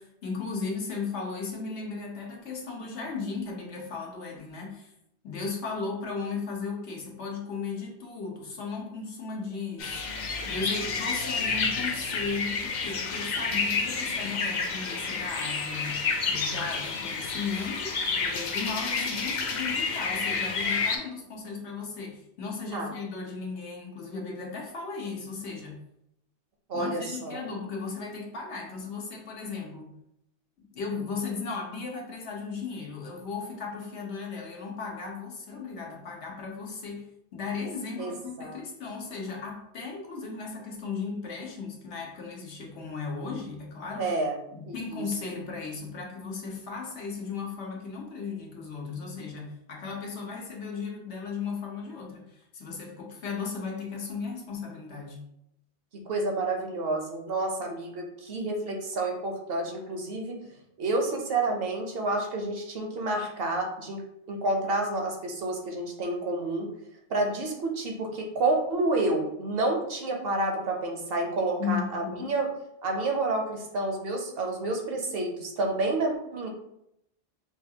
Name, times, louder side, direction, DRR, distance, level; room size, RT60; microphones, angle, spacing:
voice 1, 0.0-4.9 5.2-10.0 10.4-25.8 26.7-29.9 30.6-44.1 44.5-55.2 71.6-72.3, left 4 dB, 85° left, -1 dB, 1.1 m, -36 dB
sound 1, 9.8-21.0, left 4 dB, 55° left, 0.5 m, -30 dB
voice 2, 26.7-27.4 38.0-38.1 38.4-38.6 44.0-44.3 44.7-45.0 55.9-60.4 60.8-64.0 64.3-66.7 67.1-72.5 72.8-76.5, right 2 dB, 65° right, 2 dB, 0.9 m, -29 dB
5.0 x 2.3 x 2.7 m, 0.80 s
omnidirectional pair, 1.1 m